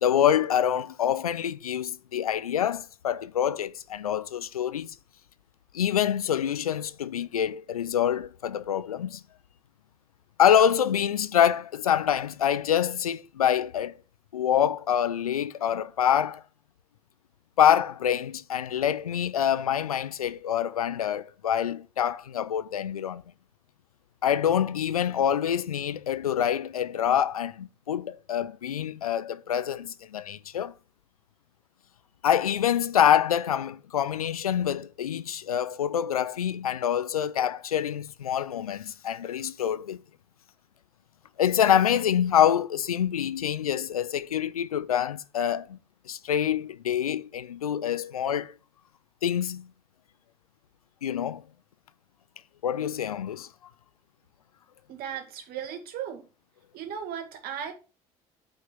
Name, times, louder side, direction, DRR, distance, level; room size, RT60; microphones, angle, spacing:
voice 1, 0.0-4.9 5.7-9.2 10.4-13.9 14.3-16.4 17.6-23.2 24.2-30.7 32.2-40.0 41.4-45.8 46.1-48.5 49.2-49.7 51.0-51.4 52.6-53.5, left 9 dB, 90° left, 0.4 m, -26 dB
voice 2, 54.9-56.3 56.7-57.7, right 8 dB, 60° right, 2.3 m, -36 dB
8.8 x 5.5 x 4.5 m
hypercardioid pair, 60°, 18 cm